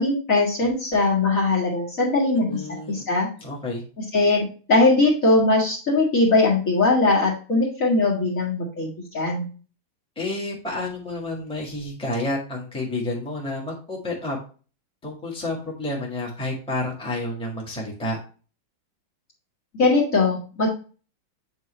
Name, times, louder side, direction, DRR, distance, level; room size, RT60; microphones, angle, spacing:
voice 1, 0.0-2.6 2.9-3.3 4.1-9.4 19.8-20.7, left 3 dB, 45° left, -4 dB, 2.1 m, -20 dB
voice 2, 2.3-3.1 3.4-3.8 10.2-14.4 15.0-18.2, left 2 dB, 5° left, -2 dB, 1.6 m, -30 dB
7.9 x 4.6 x 3.1 m, 0.37 s
omnidirectional pair, 2.1 m